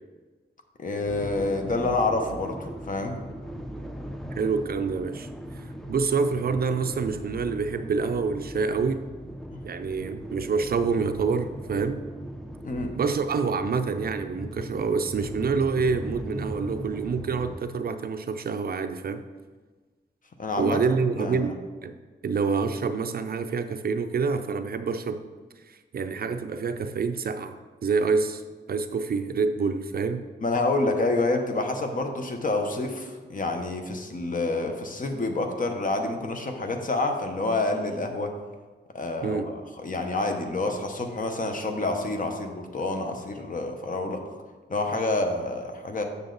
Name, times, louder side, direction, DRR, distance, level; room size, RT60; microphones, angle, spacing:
voice 1, 0.8-3.2 9.5-9.6 12.6-12.9 20.4-20.8 21.2-21.5 30.4-38.3 38.9-44.2 44.7-46.0, left 2 dB, 45° left, 4 dB, 0.8 m, -28 dB
sound 1, 1.1-17.6, equal, ahead, 0.4 m, -39 dB
voice 2, 4.3-5.3 5.5-9.1 9.6-12.0 13.0-19.2 20.6-22.0 22.2-25.2 25.7-27.6 27.8-28.4 28.7-30.2 39.2-39.5, right 5 dB, 55° right, 9 dB, 0.4 m, -27 dB
6.9 x 6.6 x 3.9 m, 1.3 s
wide cardioid pair, 170°, 19 cm